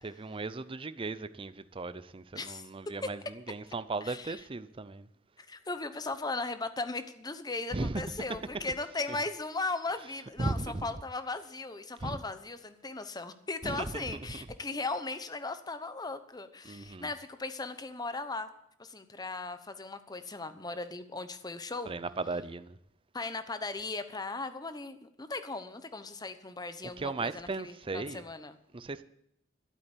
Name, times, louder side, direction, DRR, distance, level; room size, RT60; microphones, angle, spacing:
voice 1, 0.0-5.1 7.7-8.0 10.4-10.9 12.0-12.2 13.6-14.0 16.6-17.1 21.9-22.8 27.0-28.2 28.7-29.0, right 3 dB, 25° right, 0.5 m, -36 dB
voice 2, 4.0-4.4 5.4-18.5 18.8-21.9 23.1-28.6, left 3 dB, 20° left, 0.9 m, -37 dB
12.0 x 8.6 x 8.4 m
head